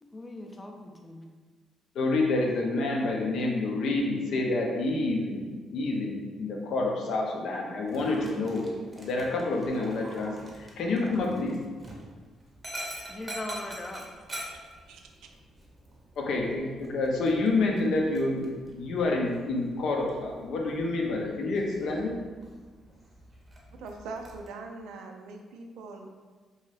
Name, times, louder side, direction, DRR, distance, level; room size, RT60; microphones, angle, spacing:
voice 1, 0.0-1.2 13.1-14.0, left 1 dB, 20° left, 2 dB, 0.4 m, -40 dB
voice 2, 1.9-11.6 16.2-22.2, left 2 dB, 70° left, 0 dB, 0.5 m, -28 dB
Dog, 7.8-24.5, right 1 dB, 25° right, 0.7 m, -46 dB
voice 3, 14.5-15.3 23.7-26.1, right 3 dB, 85° right, 4 dB, 0.3 m, -42 dB
2.6 x 2.3 x 3.2 m, 1.5 s
cardioid pair, 90°, 0 cm